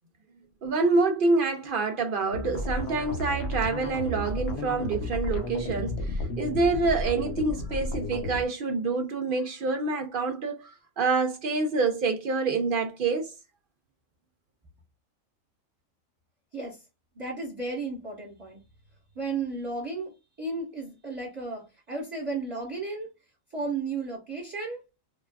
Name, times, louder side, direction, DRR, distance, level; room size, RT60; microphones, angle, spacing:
voice 1, 0.6-13.3, right 3 dB, 60° right, 0.5 m, -27 dB
sound 1, 2.3-8.4, left 1 dB, 70° left, 1.1 m, -33 dB
voice 2, 17.1-18.6 19.1-23.1 23.5-24.8, right 3 dB, 25° right, 1.1 m, -34 dB
3.8 x 2.3 x 2.2 m
omnidirectional pair, 1.4 m